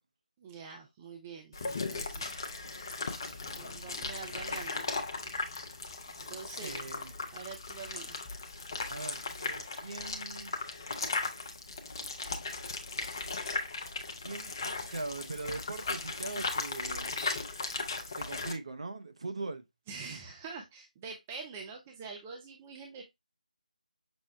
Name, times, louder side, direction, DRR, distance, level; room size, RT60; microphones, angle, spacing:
voice 1, 0.4-1.6 1.9-2.3 3.5-4.9 5.3-5.6 6.2-6.9 7.3-8.1 17.9-18.2 19.9-23.0, right 5 dB, 10° right, 0.4 m, -45 dB
sound 1, 1.5-18.5, left 3 dB, 30° left, 0.6 m, -37 dB
voice 2, 6.6-7.1 8.9-10.5 14.2-17.1 18.2-19.6, right 3 dB, 45° right, 0.7 m, -41 dB
6.1 x 2.1 x 3.2 m
figure-of-eight pair, 160°, 4 cm